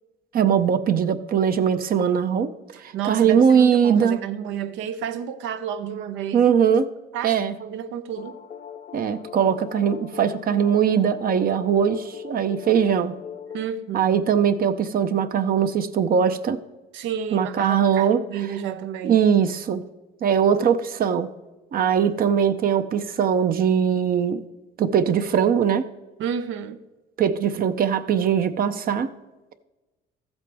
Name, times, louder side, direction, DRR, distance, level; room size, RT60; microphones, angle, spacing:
voice 1, 0.3-2.5 2.8-4.2 6.3-6.9 7.2-7.5 8.9-13.1 13.9-16.6 17.3-18.2 19.0-19.8 20.2-21.3 21.7-24.4 24.8-25.9 27.2-29.1, right 7 dB, 50° right, 0.6 m, -21 dB
voice 2, 2.7-6.5 7.1-8.4 13.5-14.2 16.9-19.2 20.5-20.6 26.2-26.8, right 8 dB, 85° right, 0.7 m, -31 dB
sound 1, 8.2-13.6, left 8 dB, 40° left, 0.6 m, -40 dB
14.0 x 8.1 x 3.4 m
cardioid pair, 115°, 19 cm